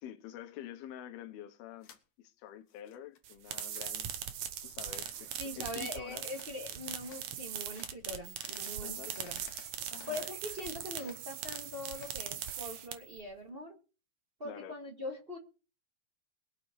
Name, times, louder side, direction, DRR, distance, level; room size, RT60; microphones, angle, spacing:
voice 1, 0.0-1.9 2.2-4.1 4.6-6.3 8.8-9.1 9.9-10.3 14.4-14.8, left 11 dB, 75° left, 2.9 m, -47 dB
sound 1, 1.8-2.0 2.4-3.2 3.5-3.9 4.9-5.2 5.6-5.8 6.3-6.5 7.0-7.3 7.7-7.9 8.4-10.7 11.0-12.6, left 8 dB, 60° left, 2.4 m, -55 dB
sound 2, 3.2-13.2, right 9 dB, 65° right, 1.9 m, -41 dB
voice 2, 5.4-9.4 10.1-13.8 14.4-15.4, left 1 dB, 25° right, 1.2 m, -42 dB
sound 3, 7.8-7.9 8.2-13.2, right 14 dB, 80° right, 3.9 m, -53 dB
22.5 x 7.6 x 4.6 m
omnidirectional pair, 4.6 m